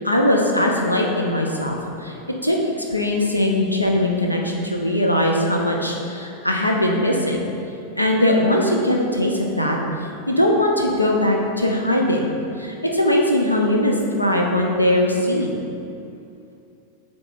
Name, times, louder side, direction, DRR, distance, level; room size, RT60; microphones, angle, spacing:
voice 1, 0.0-7.5 8.0-9.8 10.3-12.3 12.6-15.6, left 1 dB, 85° left, 0 dB, 0.5 m, -20 dB
7.8 x 3.6 x 4.1 m, 2.6 s
figure-of-eight pair, 90°, 0 cm